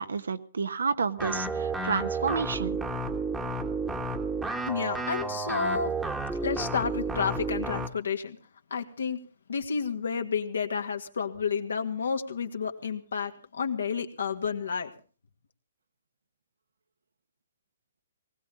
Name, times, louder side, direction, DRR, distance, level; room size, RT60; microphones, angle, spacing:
voice 1, 0.0-2.8, right 5 dB, 85° right, 10 dB, 1.2 m, -30 dB
sound 1, 1.2-7.9, right 3 dB, 5° right, 1.2 m, -31 dB
voice 2, 4.6-5.9 6.4-8.4 8.7-9.2 9.5-14.9, left 6 dB, 80° left, 5 dB, 2.1 m, -30 dB
19.5 x 17.5 x 3.8 m, 0.37 s
hypercardioid pair, 140°, 0 cm